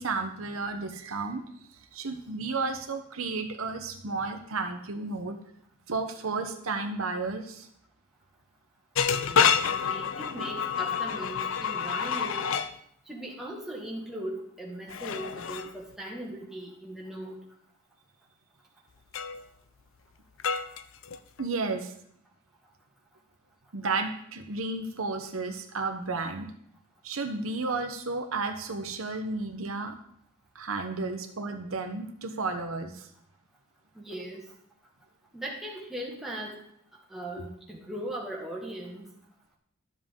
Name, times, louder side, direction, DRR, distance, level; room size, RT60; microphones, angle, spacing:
voice 1, 0.0-1.4 1.9-5.4 5.9-7.7 21.4-21.9 23.7-26.5 27.0-29.9 30.5-33.1, right 3 dB, 80° right, 5 dB, 1.0 m, -32 dB
sound 1, 9.0-12.7 14.9-15.7 19.1-19.5 20.4-21.5, left 7 dB, 65° left, 0.5 m, -28 dB
voice 2, 9.3-12.5 13.1-17.4 34.0-34.4 35.3-36.6 37.1-39.0, right 1 dB, ahead, -3 dB, 1.9 m, -39 dB
12.5 x 7.4 x 3.8 m, 0.69 s
head